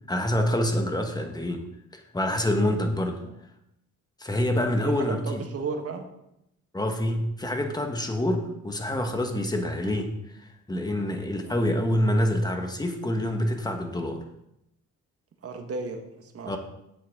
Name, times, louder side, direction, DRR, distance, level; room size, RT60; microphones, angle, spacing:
voice 1, 0.1-1.6 1.9-3.2 4.2-5.5 6.7-14.2 16.5-16.6, left 1 dB, 15° left, 5 dB, 1.6 m, -27 dB
voice 2, 4.8-6.1 11.4-11.6 15.4-16.6, right 4 dB, 50° right, 4 dB, 1.6 m, -34 dB
10.5 x 8.3 x 3.8 m, 0.82 s
cardioid pair, 90°, 30 cm